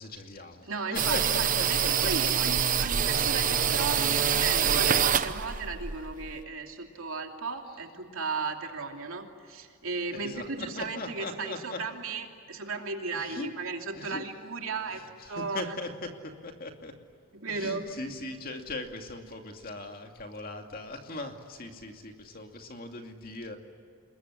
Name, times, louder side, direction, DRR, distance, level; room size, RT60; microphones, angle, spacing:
voice 1, 0.0-2.1 2.4-2.5 10.2-11.8 13.1-13.5 13.9-14.2 14.9-15.1 15.4-15.9 16.2-16.9 17.5-23.6, left 2 dB, 40° left, 4 dB, 2.5 m, -39 dB
voice 2, 0.6-15.0 15.3-15.7 17.3-17.8, right 4 dB, 70° right, 3 dB, 2.8 m, -35 dB
sound 1, 0.9-6.4, right 8 dB, 35° right, 0.9 m, -26 dB
27.5 x 21.5 x 9.9 m, 2.3 s
head